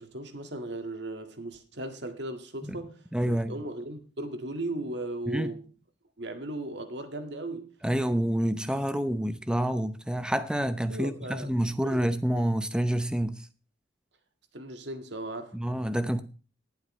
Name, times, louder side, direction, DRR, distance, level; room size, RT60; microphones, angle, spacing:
voice 1, 0.0-3.0 3.3-5.6 6.2-7.7 10.9-11.5 11.8-12.0 14.5-15.6, right 1 dB, 60° right, 1.9 m, -37 dB
voice 2, 3.1-3.6 5.3-5.5 7.8-13.4 15.5-16.2, right 1 dB, 5° right, 0.7 m, -28 dB
19.0 x 8.1 x 3.2 m
head